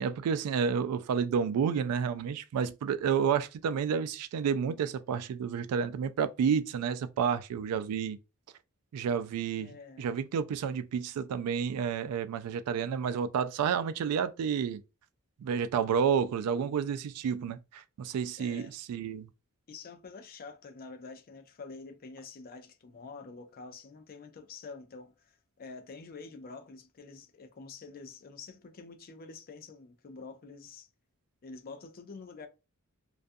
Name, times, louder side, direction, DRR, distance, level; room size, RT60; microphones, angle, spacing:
voice 1, 0.0-8.2 8.9-14.8 15.4-19.3, right 7 dB, 90° right, 0.3 m, -30 dB
voice 2, 9.6-10.0 18.4-18.7 19.7-30.9 31.4-32.5, left 4 dB, 40° left, 0.4 m, -47 dB
2.4 x 2.2 x 2.5 m
head